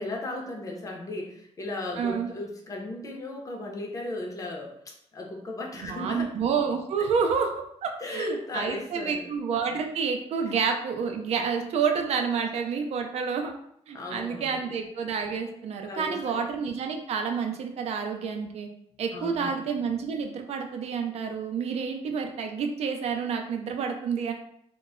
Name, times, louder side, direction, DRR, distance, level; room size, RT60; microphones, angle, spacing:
voice 1, 0.0-6.3 7.0-7.1 8.0-9.3 10.4-10.5 13.9-14.6 15.8-16.4 19.1-19.5, left 2 dB, 30° left, 0 dB, 0.5 m, -36 dB
voice 2, 2.0-2.3 5.8-13.5 13.9-18.7 19.0-24.3, right 6 dB, 65° right, 4 dB, 0.4 m, -29 dB
2.2 x 2.0 x 3.5 m, 0.70 s
wide cardioid pair, 145°, 12 cm